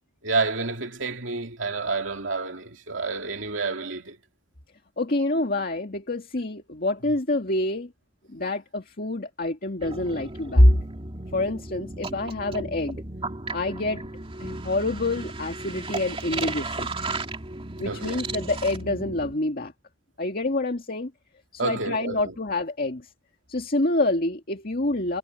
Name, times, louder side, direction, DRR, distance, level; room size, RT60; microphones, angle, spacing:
voice 1, 0.2-4.2 17.8-18.2 21.6-22.3, right 3 dB, 70° right, 2.9 m, -29 dB
voice 2, 5.0-7.9 8.3-10.7 11.3-13.0 13.5-14.0 14.4-16.9 17.8-19.7 20.2-21.1 21.5-23.1 23.5-25.2, left 1 dB, 50° left, 2.1 m, -26 dB
sound 1, 9.8-19.3, right 2 dB, 30° right, 2.5 m, -35 dB
head